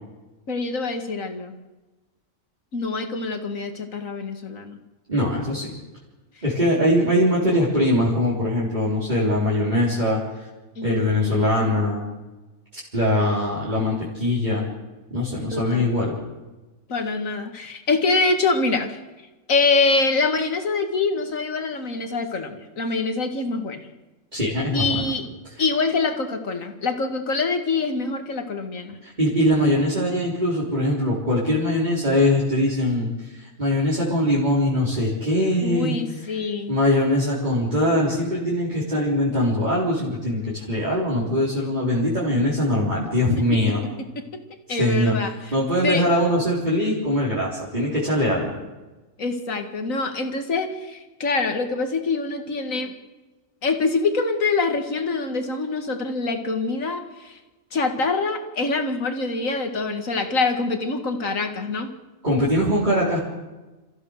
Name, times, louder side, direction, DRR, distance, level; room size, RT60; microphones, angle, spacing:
voice 1, 0.5-1.6 2.7-4.8 10.8-11.7 15.5-15.9 16.9-19.0 19.5-23.8 24.7-25.2 25.6-29.0 35.6-36.7 44.7-45.6 45.8-46.0 49.2-52.9 53.6-57.4 57.7-61.9, left 3 dB, 70° left, 6 dB, 2.3 m, -25 dB
voice 2, 5.1-5.7 6.4-10.2 10.8-12.0 12.9-14.7 15.1-16.2 24.3-25.1 29.0-36.3 36.7-43.8 44.7-45.1 45.5-48.6 62.2-63.2, left 1 dB, 30° right, -7 dB, 4.2 m, -22 dB
29.0 x 15.0 x 6.6 m, 1.1 s
omnidirectional pair, 1.4 m